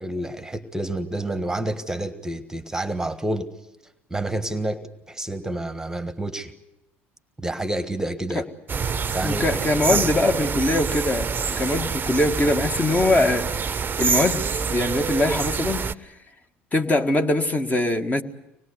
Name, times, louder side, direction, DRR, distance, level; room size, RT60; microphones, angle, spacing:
voice 1, 0.0-3.5 4.1-6.5 7.4-8.4 9.1-9.4 9.9-10.1, right 1 dB, 10° right, 11 dB, 1.5 m, -29 dB
sound 1, 8.7-15.9, right 6 dB, 30° right, 0.8 m, -26 dB
voice 2, 9.2-11.3 11.6-15.9 16.7-18.2, left 2 dB, 20° left, 6 dB, 1.8 m, -22 dB
25.0 x 20.5 x 8.2 m, 0.89 s
hypercardioid pair, 65°, 7 cm